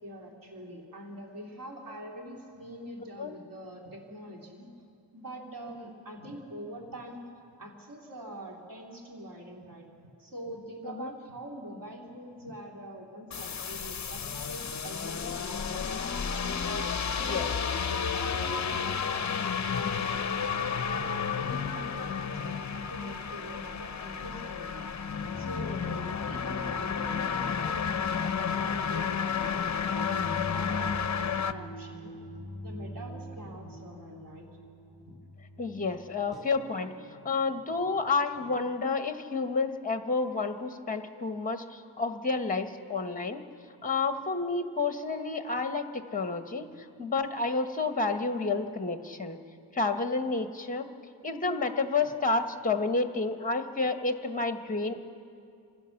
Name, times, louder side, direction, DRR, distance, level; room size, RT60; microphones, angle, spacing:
voice 1, 0.0-4.7 5.1-7.3 7.6-16.7 17.1-17.5 17.9-20.4 20.8-30.2 30.5-32.1 32.6-34.5 35.1-35.2, equal, 45° right, 0 dB, 2.7 m, -44 dB
sound 1, 13.3-31.5, left 6 dB, 40° left, 0.7 m, -32 dB
sound 2, 25.3-37.9, left 1 dB, ahead, 3.2 m, -44 dB
voice 2, 35.6-36.9 37.2-43.4 43.8-46.7 47.0-49.4 49.7-50.9 51.2-55.0, left 3 dB, 15° left, 7 dB, 1.1 m, -30 dB
26.5 x 16.0 x 7.0 m, 2.4 s
wide cardioid pair, 125°, 47 cm